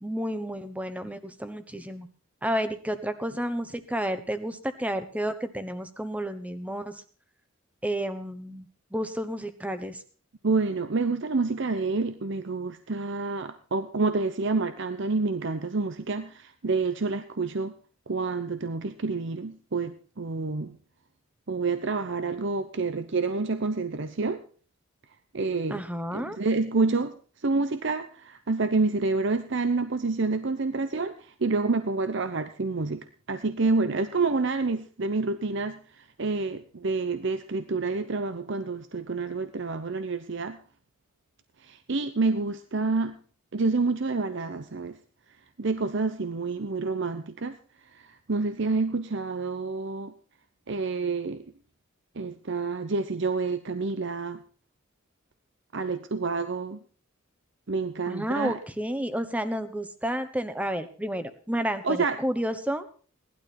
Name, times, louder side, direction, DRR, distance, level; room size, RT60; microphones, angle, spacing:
voice 1, 0.0-2.1 2.4-7.0 7.8-10.0 25.7-26.4 58.1-62.8, equal, 5° right, 10 dB, 1.1 m, -31 dB
voice 2, 10.4-17.7 18.1-20.8 21.5-24.4 25.3-25.8 26.1-27.1 27.4-35.8 36.2-40.6 41.6-43.1 43.5-45.0 45.6-47.6 47.9-48.0 48.3-50.1 50.7-51.4 52.2-54.4 55.7-56.8 57.7-58.6 61.8-62.2, right 3 dB, 60° right, 10 dB, 0.8 m, -28 dB
18.0 x 12.0 x 4.3 m, 0.41 s
head